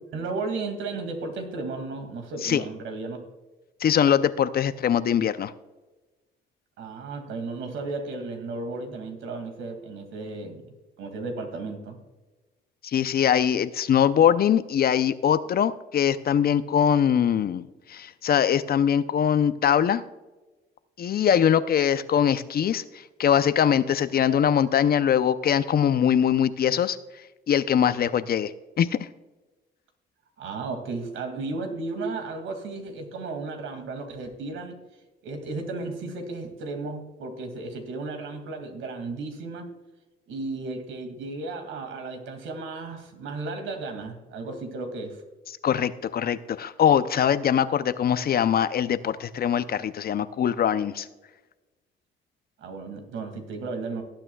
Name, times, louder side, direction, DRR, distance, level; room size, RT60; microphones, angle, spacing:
voice 1, 0.1-3.2 6.8-10.7 11.0-12.0 30.4-34.8 35.2-39.7 40.3-45.2 52.6-54.0, right 3 dB, 80° right, 5 dB, 2.3 m, -34 dB
voice 2, 3.8-5.5 12.8-17.6 17.9-20.0 21.0-22.8 23.2-27.0 27.5-28.5 28.8-29.1 45.6-51.1, left 9 dB, 50° left, 14 dB, 0.6 m, -22 dB
18.5 x 8.8 x 2.3 m, 1.2 s
cardioid pair, 90°, 20 cm